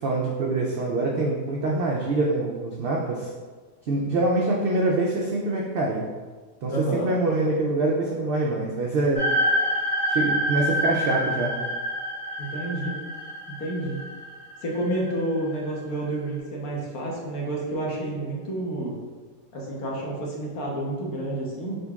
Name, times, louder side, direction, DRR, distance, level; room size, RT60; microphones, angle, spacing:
voice 1, 0.0-3.3 3.9-6.1 6.6-9.2 10.1-11.6, right 2 dB, 80° right, -2 dB, 0.5 m, -25 dB
voice 2, 6.7-7.1 12.4-13.0 13.5-14.0 14.6-19.0 19.5-21.8, right 1 dB, 80° left, -3 dB, 1.4 m, -29 dB
sound 1, 9.2-15.4, equal, 45° left, 1.6 m, -27 dB
5.0 x 3.9 x 2.3 m, 1.4 s
omnidirectional pair, 1.5 m